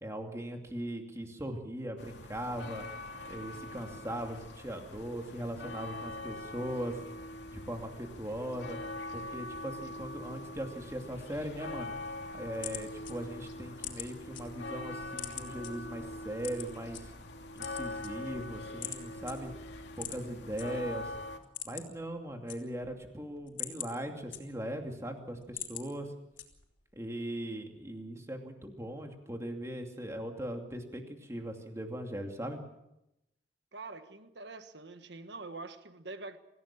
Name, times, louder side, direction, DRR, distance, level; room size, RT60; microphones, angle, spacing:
voice 1, 0.0-2.8 3.3-7.0 7.5-8.8 9.1-11.9 12.3-17.1 17.5-19.5 20.0-21.1 21.6-26.1 26.9-32.6, right 1 dB, 15° right, 3 dB, 2.6 m, -39 dB
sound 1, 2.0-21.4, left 2 dB, 70° left, 2.8 m, -43 dB
sound 2, 12.5-14.4 14.8-15.7 16.4-17.0 17.5-18.5 18.8-19.0 19.3-19.4 19.9-20.7 21.0-21.1 21.4-22.0 22.3-23.0 23.4-24.8 25.2-25.9 26.4-26.8, left 11 dB, 85° left, 3.6 m, -42 dB
voice 2, 33.7-36.4, right 3 dB, 65° right, 9 dB, 1.5 m, -45 dB
25.5 x 16.0 x 7.4 m, 0.87 s
head